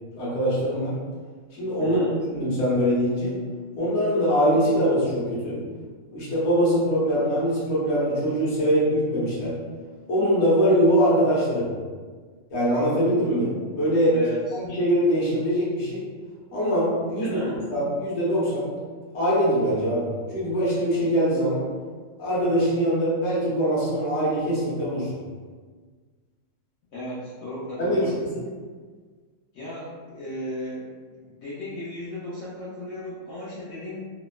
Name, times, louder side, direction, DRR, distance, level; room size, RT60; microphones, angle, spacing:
voice 1, 0.1-1.0 1.6-2.0 2.3-3.3 3.8-5.6 6.1-9.5 10.1-11.7 12.5-13.5 13.8-14.2 14.5-16.0 16.5-17.4 17.7-18.7 19.1-21.6 22.2-25.1 27.8-28.4, equal, 60° left, -9 dB, 1.1 m, -23 dB
voice 2, 1.8-2.1 14.1-14.6 17.2-17.6 26.9-28.1 29.5-30.8 31.1-34.0, left 1 dB, 80° left, -8 dB, 1.0 m, -35 dB
2.8 x 2.0 x 2.2 m, 1.5 s
omnidirectional pair, 1.4 m